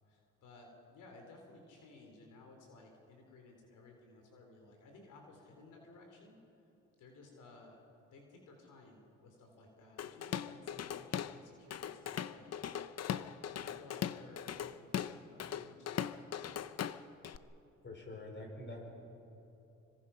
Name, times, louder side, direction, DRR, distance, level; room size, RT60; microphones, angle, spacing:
voice 1, 0.1-6.4 7.0-7.8 8.1-12.5 13.5-16.5, left 2 dB, 85° left, 2 dB, 3.8 m, -57 dB
Drum kit / Drum, 10.0-11.4 11.7-17.4, left 9 dB, 55° left, 0.8 m, -39 dB
voice 2, 17.8-19.1, left 1 dB, 40° left, 2 dB, 5.3 m, -46 dB
25.5 x 25.5 x 5.8 m, 2.9 s
cardioid pair, 90°, 30 cm